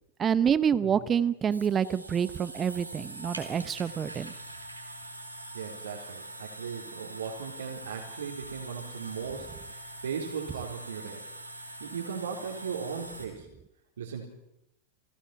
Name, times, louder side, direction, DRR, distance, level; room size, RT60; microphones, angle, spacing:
voice 1, 0.2-4.3, right 8 dB, 25° right, 17 dB, 0.9 m, -27 dB
voice 2, 0.8-1.1 5.5-11.2 11.8-13.5 14.0-14.3, right 6 dB, 65° right, -3 dB, 3.9 m, -37 dB
sound 1, 0.9-13.3, right 1 dB, 85° right, 4.0 m, -44 dB
30.0 x 17.5 x 6.0 m, 0.84 s
figure-of-eight pair, 90°, 0 cm